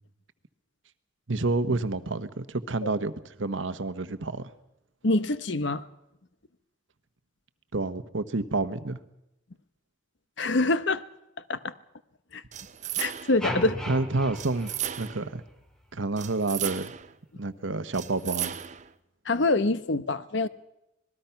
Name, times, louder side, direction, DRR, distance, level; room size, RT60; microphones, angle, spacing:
voice 1, 1.3-4.5 7.7-9.0 13.9-14.7 15.0-15.4 15.9-16.9 17.4-18.6, right 3 dB, 80° right, 11 dB, 1.1 m, -29 dB
voice 2, 5.0-5.8 10.4-11.0 11.5-11.7 12.3-12.4 13.0-13.8 19.3-20.5, left 2 dB, 65° left, 14 dB, 0.9 m, -25 dB
sound 1, 12.5-13.5 14.3-15.3 16.2-17.1 17.9-18.9, right 11 dB, 40° right, 0.7 m, -35 dB
sound 2, 13.4-15.7, equal, 5° left, 2.0 m, -36 dB
26.0 x 20.0 x 5.8 m, 0.87 s
head